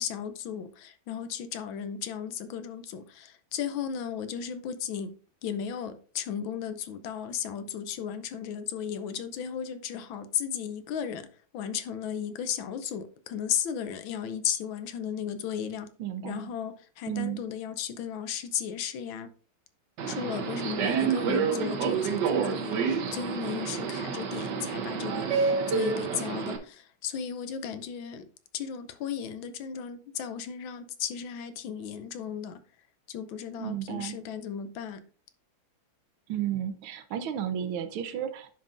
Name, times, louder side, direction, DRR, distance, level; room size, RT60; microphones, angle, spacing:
voice 1, 0.0-5.1 5.4-11.3 11.5-15.9 16.2-19.3 20.1-28.3 28.5-32.6 33.1-35.0, left 8 dB, 75° left, 1.4 m, -35 dB
voice 2, 16.0-16.5 17.1-17.4 33.6-34.2 36.3-38.5, right 10 dB, 80° right, 1.6 m, -33 dB
Subway metro underground, 20.0-26.6, right 6 dB, 65° right, 1.4 m, -28 dB
10.0 x 5.5 x 2.5 m
omnidirectional pair, 2.2 m